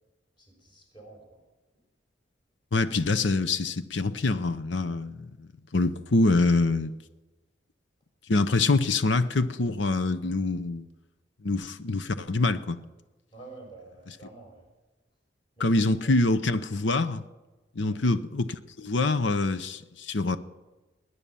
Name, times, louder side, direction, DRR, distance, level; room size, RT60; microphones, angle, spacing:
voice 1, 0.4-1.4 13.3-14.6 15.6-16.1 17.8-18.0, right 3 dB, 25° left, 0 dB, 5.4 m, -49 dB
voice 2, 2.7-6.9 8.3-10.9 11.4-12.8 14.1-14.2 15.6-17.2 17.8-20.4, left 3 dB, 80° left, 12 dB, 0.8 m, -25 dB
20.0 x 9.9 x 7.0 m, 1.1 s
head